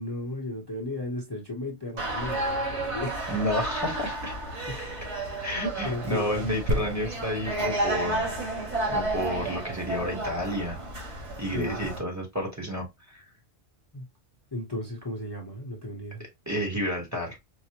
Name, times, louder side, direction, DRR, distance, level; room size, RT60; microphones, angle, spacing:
voice 1, 0.0-3.1 4.7-4.9 5.5-6.5 11.5-11.9 13.9-14.1 14.5-16.3, left 1 dB, 25° left, 0.8 m, -35 dB
sound 1, 2.0-12.0, right 2 dB, 80° right, 2.0 m, -32 dB
voice 2, 3.3-4.3 5.4-8.3 8.9-10.8 11.4-13.2 16.5-17.4, equal, 15° right, 1.0 m, -30 dB
sound 2, 6.7-10.3 10.9-11.0, left 1 dB, 65° right, 0.9 m, -35 dB
4.6 x 2.1 x 2.8 m
omnidirectional pair, 1.2 m